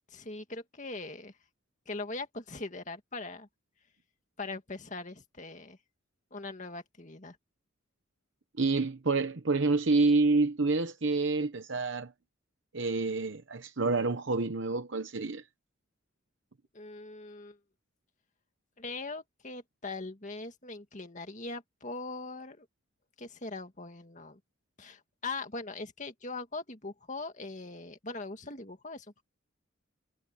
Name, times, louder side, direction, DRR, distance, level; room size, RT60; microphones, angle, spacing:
voice 1, 0.1-1.3 1.9-3.5 4.4-5.8 6.3-7.4 16.7-17.6 18.8-22.7 23.2-24.4 24.8-29.2, left 3 dB, 35° left, 2.2 m, -41 dB
voice 2, 8.6-12.1 12.7-15.4, right 3 dB, 60° right, 0.9 m, -28 dB
head